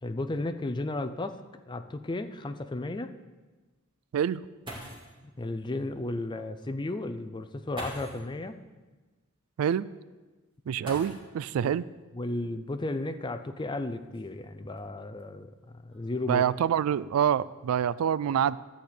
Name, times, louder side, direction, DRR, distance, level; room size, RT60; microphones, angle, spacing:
voice 1, 0.0-1.4 1.7-3.1 5.4-8.6 11.6-11.7 12.1-16.4, left 2 dB, 20° left, 9 dB, 0.5 m, -34 dB
sound 1, 4.6-5.2 6.5-6.6 7.7-8.3 10.8-11.5 12.9-13.0 13.7-15.2 15.9-16.3 16.6-17.0, right 1 dB, 25° right, 2.2 m, -43 dB
voice 2, 10.7-11.8 16.3-18.6, right 9 dB, 75° right, 18 dB, 0.3 m, -26 dB
12.0 x 4.3 x 8.2 m, 1.3 s
head